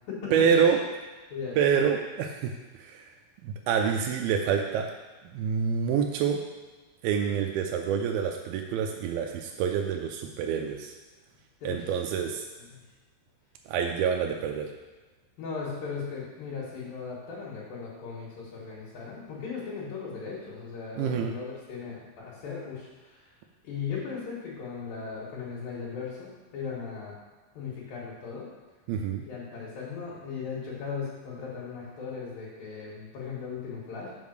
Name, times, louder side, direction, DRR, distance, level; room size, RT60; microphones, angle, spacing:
voice 1, 0.3-0.8 1.6-3.1 3.4-4.9 5.3-6.4 7.0-10.9 11.7-12.4 13.7-14.7 21.0-21.3 28.9-29.2, right 7 dB, 90° right, 3 dB, 2.5 m, -27 dB
voice 2, 1.3-1.6 11.6-11.9 12.6-12.8 15.4-23.2 23.6-27.1 27.5-28.5 29.2-34.1, left 5 dB, 75° left, -6 dB, 3.1 m, -37 dB
5.7 x 5.4 x 6.4 m, 1.3 s
omnidirectional pair, 4.2 m